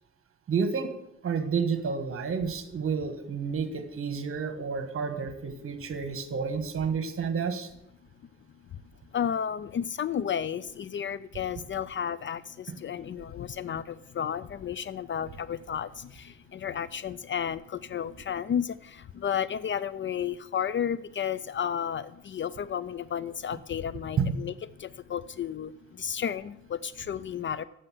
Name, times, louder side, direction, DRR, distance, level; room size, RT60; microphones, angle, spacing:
voice 1, 0.5-0.9 1.2-7.7 24.2-24.4, right 5 dB, 45° right, 9 dB, 1.4 m, -30 dB
voice 2, 9.1-24.5 24.8-27.6, left 8 dB, 40° left, 17 dB, 0.4 m, -32 dB
7.7 x 6.7 x 7.6 m, 0.78 s
cardioid pair, 90°, 30 cm